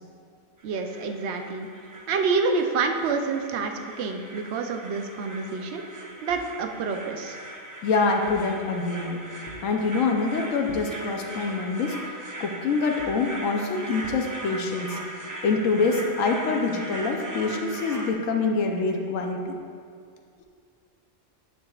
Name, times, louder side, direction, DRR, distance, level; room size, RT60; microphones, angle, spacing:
sound 1, 0.6-18.1, right 1 dB, 25° right, 0.4 m, -39 dB
voice 1, 0.6-1.7 2.1-5.8 6.2-7.4, right 4 dB, 65° right, 5 dB, 0.9 m, -27 dB
voice 2, 7.8-9.2 9.6-12.0 12.4-15.0 15.4-19.6, left 4 dB, 80° left, 2 dB, 1.0 m, -25 dB
9.9 x 7.6 x 2.4 m, 2.2 s
omnidirectional pair, 1.3 m